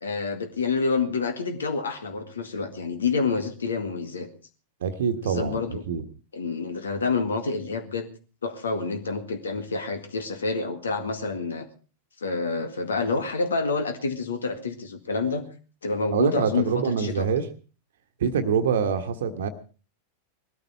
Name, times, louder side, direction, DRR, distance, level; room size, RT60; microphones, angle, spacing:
voice 1, 0.0-4.3 5.2-5.8 6.3-8.1 8.4-11.7 12.2-15.4 15.8-17.3 18.3-18.5, left 4 dB, 70° left, 7 dB, 2.0 m, -28 dB
voice 2, 4.8-5.6 5.9-6.1 16.1-17.5 18.2-19.5, right 6 dB, 60° right, 8 dB, 1.3 m, -25 dB
19.0 x 13.5 x 4.5 m, 0.37 s
figure-of-eight pair, 90°, 0 cm